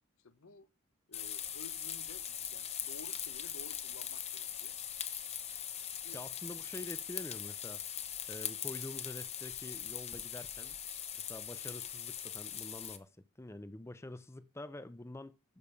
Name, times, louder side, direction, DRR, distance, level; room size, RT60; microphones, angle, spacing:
voice 1, 0.2-0.7 1.1-4.8 6.0-6.2, left 3 dB, 80° left, 1.0 m, -54 dB
sound 1, 1.1-13.0, left 9 dB, 30° left, 0.9 m, -41 dB
voice 2, 6.1-7.8 8.3-10.8 11.2-13.1 13.4-15.6, left 1 dB, 15° left, 0.6 m, -47 dB
12.0 x 5.3 x 6.8 m
head